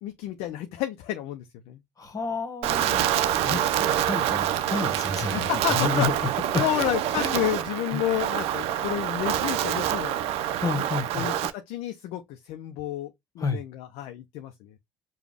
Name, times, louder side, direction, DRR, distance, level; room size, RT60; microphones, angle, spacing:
voice 1, 0.0-1.8 3.3-3.6 5.3-6.1 6.6-10.2 10.8-10.9 11.1-14.7, left 12 dB, 75° left, 0.5 m, -31 dB
voice 2, 2.0-6.8 7.2-7.4 7.9-8.0 10.6-11.3 13.4-13.6, left 4 dB, 35° left, 1.4 m, -30 dB
Wind, 2.6-11.5, right 11 dB, 70° right, 0.5 m, -26 dB
5.0 x 2.3 x 3.3 m
hypercardioid pair, 65°, 11 cm